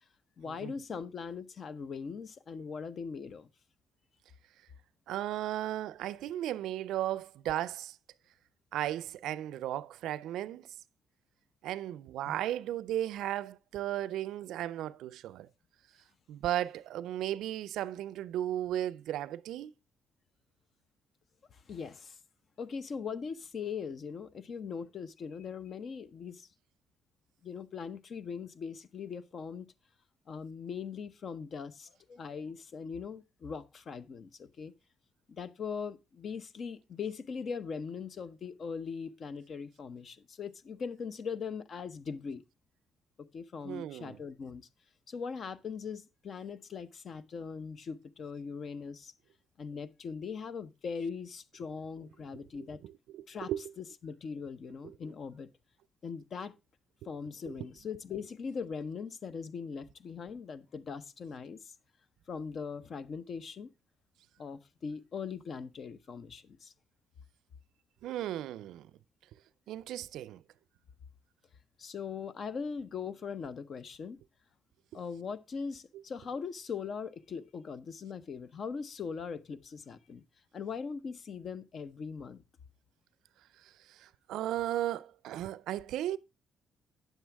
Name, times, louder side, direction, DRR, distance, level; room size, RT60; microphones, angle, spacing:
voice 1, 0.4-3.5 12.3-12.4 21.5-22.2 22.6-26.5 27.4-29.7 30.3-34.7 35.3-42.4 43.2-44.7 45.1-49.1 49.6-52.8 53.3-53.5 53.8-55.5 56.0-56.5 57.0-61.7 62.3-63.7 64.4-66.7 71.8-74.2 74.9-80.2 80.5-82.4, left 6 dB, 55° left, 0.7 m, -40 dB
voice 2, 5.1-8.0 8.7-10.7 11.6-15.5 16.3-19.7 43.6-44.2 52.8-53.6 54.8-54.9 57.5-57.6 68.0-68.9 69.7-70.4 83.6-86.2, right 12 dB, 85° right, 0.4 m, -35 dB
9.2 x 7.4 x 3.4 m
cardioid pair, 90°, 0 cm